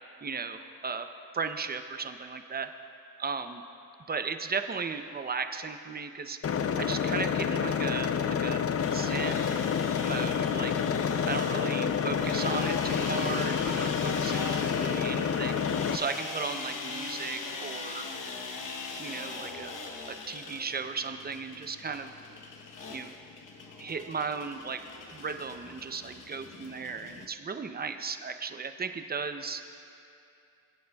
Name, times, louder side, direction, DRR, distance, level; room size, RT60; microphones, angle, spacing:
voice 1, 0.2-1.1 1.3-2.7 3.2-3.6 4.1-6.4 6.7-9.6 10.0-10.7 11.3-15.6 15.9-18.1 19.0-19.7 20.1-22.1 22.9-23.1 23.8-24.8 25.1-29.6, right 5 dB, 25° right, 8 dB, 0.6 m, -36 dB
sound 1, 6.4-16.0, left 7 dB, 45° left, 0.5 m, -28 dB
sound 2, 8.8-27.3, left 4 dB, 65° left, 1.0 m, -40 dB
22.0 x 9.3 x 2.3 m, 2.7 s
cardioid pair, 90°, 35 cm